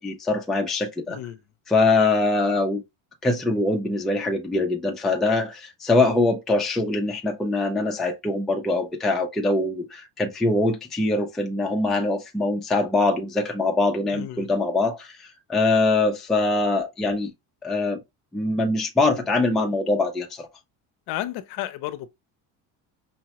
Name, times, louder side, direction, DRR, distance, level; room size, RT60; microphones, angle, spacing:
voice 1, 0.0-1.2 1.7-2.8 3.2-17.3 17.6-18.0 18.3-20.5, left 2 dB, ahead, 0.3 m, -23 dB
voice 2, 1.1-1.4 14.1-14.5 21.1-22.1, left 13 dB, 65° left, 0.6 m, -32 dB
5.4 x 2.1 x 2.8 m
cardioid pair, 165°, 42 cm